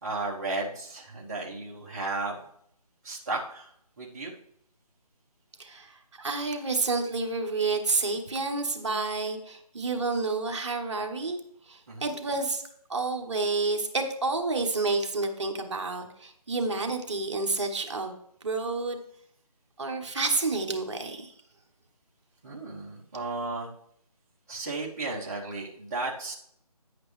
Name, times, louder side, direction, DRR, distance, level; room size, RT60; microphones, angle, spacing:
voice 1, 0.0-2.4 3.0-3.7 4.0-4.3 11.9-12.1 22.4-23.7 24.5-26.3, right 3 dB, 25° right, -4 dB, 1.1 m, -34 dB
voice 2, 5.6-11.4 11.7-12.6 12.9-18.1 18.4-19.0 19.8-21.3, right 3 dB, 45° right, 4 dB, 1.2 m, -29 dB
10.5 x 8.0 x 3.2 m, 0.70 s
figure-of-eight pair, 165°, 20 cm